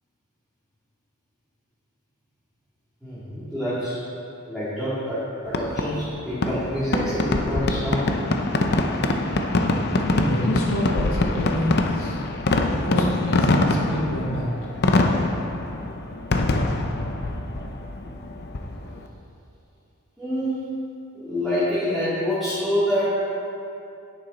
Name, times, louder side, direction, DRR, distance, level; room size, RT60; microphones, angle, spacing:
voice 1, 3.0-4.0 4.5-8.1 20.2-20.6 21.1-23.1, equal, ahead, -13 dB, 2.2 m, -26 dB
Fireworks, 5.5-19.0, left 2 dB, 50° left, 0.7 m, -24 dB
voice 2, 10.0-12.2 12.7-14.5, left 1 dB, 70° left, -4 dB, 1.5 m, -27 dB
10.0 x 9.7 x 4.1 m, 2.7 s
head